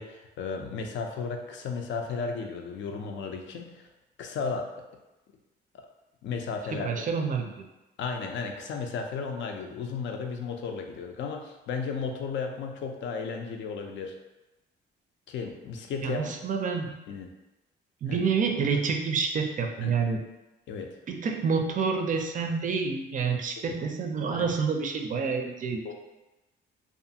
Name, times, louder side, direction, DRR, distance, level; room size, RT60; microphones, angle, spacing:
voice 1, 0.0-3.9 4.2-4.7 6.2-6.9 8.0-14.1 15.3-16.3 17.1-17.3 18.1-18.2 19.8-19.9 20.7-20.9 23.6-23.8 24.3-24.5 25.8-25.9, left 5 dB, 70° left, 3 dB, 0.4 m, -34 dB
voice 2, 6.7-7.7 16.0-17.0 18.0-20.3 21.1-25.9, right 5 dB, 40° right, 4 dB, 0.4 m, -28 dB
2.5 x 2.4 x 2.7 m, 1.0 s
cardioid pair, 90°, 20 cm